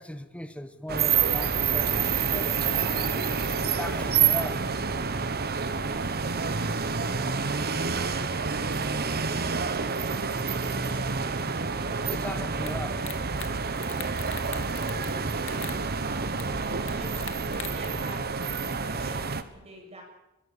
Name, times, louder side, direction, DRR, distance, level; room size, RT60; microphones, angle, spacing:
voice 1, 0.0-3.2 3.6-4.6 11.4-11.5 12.1-12.9, left 1 dB, 5° left, 10 dB, 1.3 m, -38 dB
sound 1, 0.9-19.4, right 5 dB, 45° right, 1.4 m, -28 dB
voice 2, 7.0-8.8 10.6-11.8 12.9-13.0 14.6-15.6 16.0-17.3 17.7-20.0, right 1 dB, 30° right, 1 dB, 7.8 m, -46 dB
sound 2, 12.7-12.8 13.0-13.5 13.8-15.1 15.4-15.8 16.4-16.5 16.9-17.9, left 11 dB, 60° left, 2.7 m, -40 dB
23.5 x 21.5 x 7.0 m, 0.96 s
head